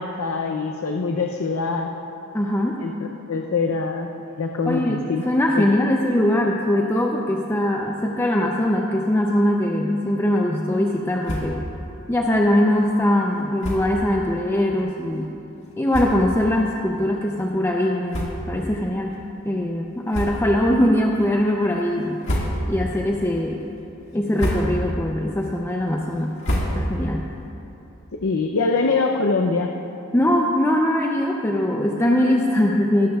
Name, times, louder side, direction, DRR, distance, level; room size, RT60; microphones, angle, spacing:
voice 1, 0.0-1.9 2.8-5.2 5.5-5.7 28.2-29.7, left 4 dB, 80° left, 2 dB, 0.6 m, -24 dB
voice 2, 2.3-2.8 4.7-11.6 12.1-15.3 15.8-19.2 19.5-22.2 22.7-23.6 24.1-26.3 26.7-27.2 30.1-33.2, left 1 dB, 10° left, 0 dB, 0.5 m, -21 dB
sound 1, 11.2-11.7 12.0-12.1 12.4-12.6 13.6-14.0 14.7-14.9 15.5-15.6 15.9-16.4 17.0-17.1 18.1-18.7 19.1-19.2 20.1-20.7 21.1-21.6 22.0-22.9 23.3-23.7 24.1-25.0 25.3-27.2, equal, 60° left, 1.9 m, -28 dB
17.5 x 13.0 x 2.4 m, 2.9 s
head